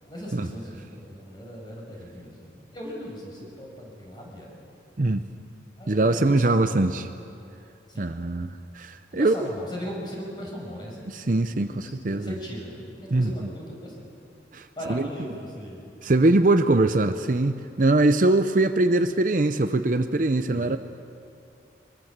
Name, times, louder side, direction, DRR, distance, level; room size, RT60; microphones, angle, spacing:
voice 1, 0.1-4.5 5.8-6.8 7.9-8.1 9.1-14.1 14.8-15.8 20.5-20.8, equal, 25° left, -2 dB, 6.2 m, -38 dB
voice 2, 5.0-5.3 5.9-7.1 8.0-9.4 11.0-12.3 13.1-13.5 14.5-15.1 16.0-20.8, right 2 dB, 45° right, 9 dB, 0.7 m, -22 dB
24.0 x 22.5 x 7.5 m, 2.6 s
head